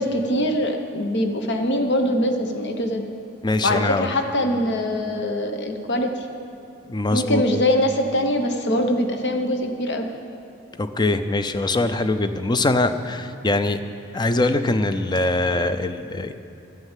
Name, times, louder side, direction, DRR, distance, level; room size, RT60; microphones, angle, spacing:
voice 1, 0.0-3.0 3.6-6.3 7.1-10.1, left 1 dB, 60° left, 5 dB, 1.0 m, -23 dB
voice 2, 3.4-4.1 6.9-7.4 10.8-13.8 14.1-16.3, left 2 dB, 20° left, 10 dB, 0.5 m, -22 dB
11.5 x 9.1 x 7.4 m, 2.9 s
head